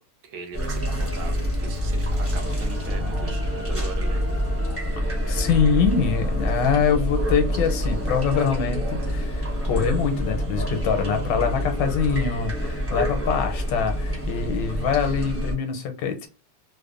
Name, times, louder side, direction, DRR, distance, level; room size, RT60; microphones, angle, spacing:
voice 1, 0.2-4.3, right 5 dB, 75° right, 1.2 m, -39 dB
sound 1, 0.5-15.5, equal, 15° right, 0.5 m, -26 dB
voice 2, 5.0-16.3, left 6 dB, 85° left, 1.3 m, -24 dB
3.2 x 2.1 x 2.4 m
omnidirectional pair, 1.9 m